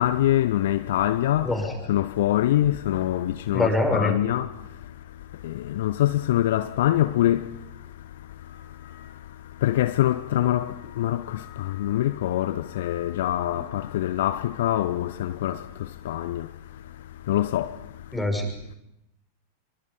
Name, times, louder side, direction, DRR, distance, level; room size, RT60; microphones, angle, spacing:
voice 1, 0.0-1.5 1.9-4.5 5.4-7.5 9.6-15.6 16.1-16.5 17.3-17.7, left 13 dB, 55° left, 0.8 m, -24 dB
voice 2, 1.4-1.7 3.5-4.2 18.1-18.5, left 2 dB, 5° left, 6.1 m, -24 dB
26.5 x 24.0 x 5.7 m
figure-of-eight pair, 90°, 0 cm